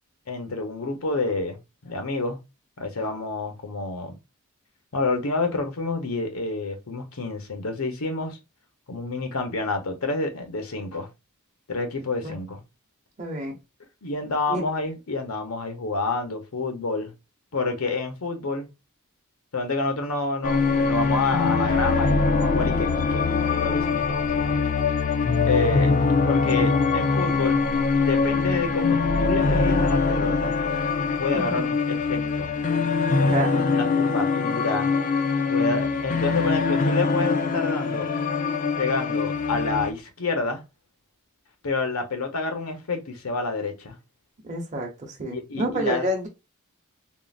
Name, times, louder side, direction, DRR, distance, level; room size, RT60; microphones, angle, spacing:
voice 1, 0.3-2.4 2.8-4.1 4.9-8.4 8.9-11.1 11.7-12.6 14.0-17.1 17.5-18.7 19.5-23.2 23.5-24.6 25.5-27.6 28.0-30.6 31.2-32.5 33.2-34.9 35.5-38.1 38.8-40.6 41.6-44.0 45.3-46.1, left 3 dB, 75° left, 0.9 m, -28 dB
voice 2, 13.2-13.6 14.5-14.6 31.3-31.7 33.3-33.6 44.4-46.3, right 1 dB, 35° right, 0.8 m, -29 dB
sound 1, 20.4-39.9, left 4 dB, 35° left, 0.4 m, -23 dB
3.7 x 2.0 x 2.4 m
head